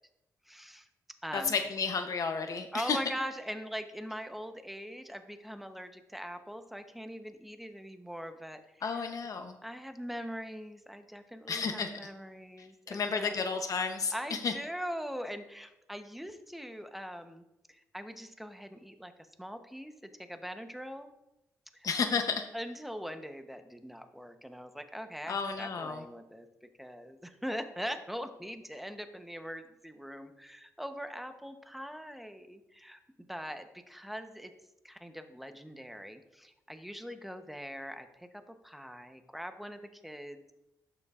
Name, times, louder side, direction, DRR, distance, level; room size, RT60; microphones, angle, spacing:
voice 1, 0.4-0.9 1.2-1.5 2.7-9.1 9.6-13.4 14.1-17.4 17.7-19.1 19.4-21.1 21.7-21.9 22.5-33.0 33.3-34.5 34.8-40.5, equal, ahead, 8 dB, 0.8 m, -42 dB
voice 2, 1.3-3.0 8.8-9.6 11.5-11.9 12.6-14.5 21.8-22.5 25.3-26.0, left 5 dB, 55° left, 6 dB, 0.8 m, -32 dB
12.0 x 6.8 x 2.4 m, 0.92 s
cardioid pair, 75°, 7 cm